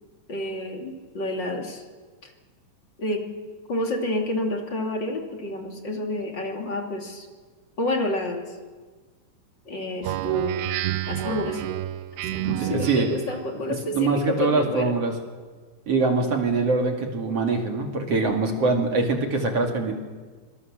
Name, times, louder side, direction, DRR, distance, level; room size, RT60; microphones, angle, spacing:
voice 1, 0.3-1.8 2.2-2.3 3.0-3.2 3.7-7.3 7.8-8.5 9.6-10.7 11.1-11.6 12.2-14.9, left 1 dB, 30° left, 2 dB, 3.0 m, -29 dB
Speech synthesizer, 10.0-13.4, right 13 dB, 85° right, 3.0 m, -29 dB
voice 2, 12.6-13.1 13.9-15.1 15.9-19.9, right 3 dB, 45° right, 3 dB, 2.9 m, -23 dB
25.5 x 24.5 x 7.5 m, 1.4 s
omnidirectional pair, 4.6 m